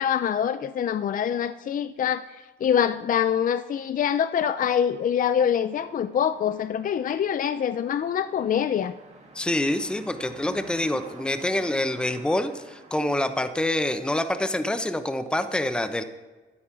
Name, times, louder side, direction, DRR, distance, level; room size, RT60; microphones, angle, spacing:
voice 1, 0.0-8.9, left 8 dB, 45° left, 13 dB, 0.5 m, -25 dB
sound 1, 4.5-14.8, right 3 dB, 35° right, 2.4 m, -50 dB
voice 2, 9.3-16.0, left 1 dB, 5° left, 10 dB, 0.8 m, -26 dB
12.5 x 9.5 x 5.8 m, 1.3 s
cardioid pair, 90°, 20 cm